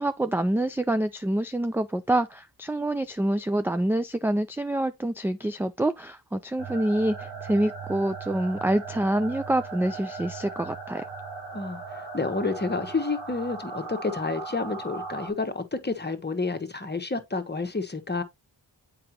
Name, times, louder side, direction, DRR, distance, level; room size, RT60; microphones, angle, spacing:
voice 1, 0.0-11.1, right 1 dB, 5° right, 0.3 m, -26 dB
sound 1, 6.6-15.3, right 4 dB, 75° right, 2.5 m, -38 dB
voice 2, 11.5-18.2, left 3 dB, 25° left, 1.1 m, -30 dB
7.6 x 4.9 x 2.9 m
cardioid pair, 55°, 43 cm